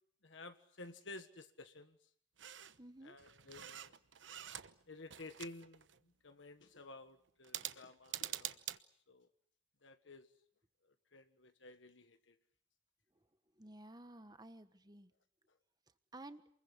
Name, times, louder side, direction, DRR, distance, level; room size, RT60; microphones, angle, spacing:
voice 1, 0.2-2.0 3.0-4.0 4.9-8.6 9.1-9.3 9.8-10.3 10.8-12.4, left 2 dB, 75° left, 8 dB, 1.5 m, -53 dB
sound 1, 2.4-2.8 3.2-4.8 5.1-6.0 7.4-8.8, right 12 dB, 75° right, 1.1 m, -46 dB
voice 2, 2.8-3.1 13.6-15.1 16.1-16.4, right 1 dB, 20° right, 10 dB, 1.4 m, -53 dB
28.0 x 21.5 x 8.3 m, 0.65 s
head